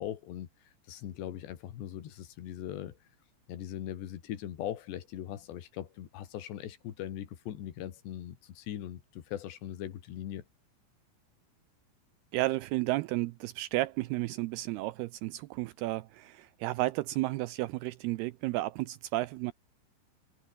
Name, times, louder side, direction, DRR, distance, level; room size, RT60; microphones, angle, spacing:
voice 1, 0.0-3.0 3.5-10.5, left 11 dB, 70° left, 4.2 m, -40 dB
voice 2, 12.3-19.5, right 18 dB, 85° right, 2.2 m, -32 dB
omnidirectional pair, 5.2 m